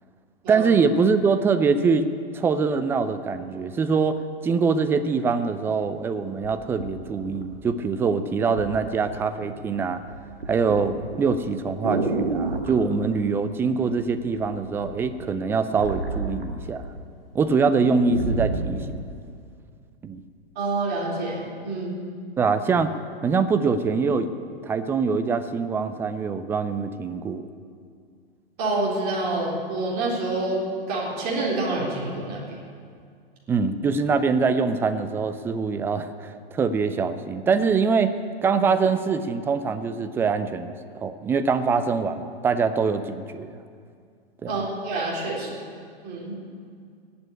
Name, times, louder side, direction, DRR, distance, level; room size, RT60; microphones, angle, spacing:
voice 1, 0.5-2.1 2.3-10.0 10.5-16.8 17.3-19.0 20.0-20.2 22.4-22.9 23.2-24.3 24.6-27.4 33.5-38.1 38.4-43.5 44.4-44.5, right 5 dB, 10° right, 10 dB, 0.4 m, -24 dB
sound 1, 5.8-5.9 6.4-7.9 8.6-8.8 9.1-9.6 9.9-12.8 13.9-14.4 14.7-17.0 17.3-17.4 17.7-18.9 19.5-19.6, right 3 dB, 70° right, 1.9 m, -29 dB
voice 2, 20.6-22.0 28.6-30.6 30.9-32.6 44.4-45.5 46.0-46.4, right 2 dB, 30° right, -4 dB, 4.1 m, -27 dB
18.0 x 7.0 x 8.6 m, 2.2 s
figure-of-eight pair, 105°, 30 cm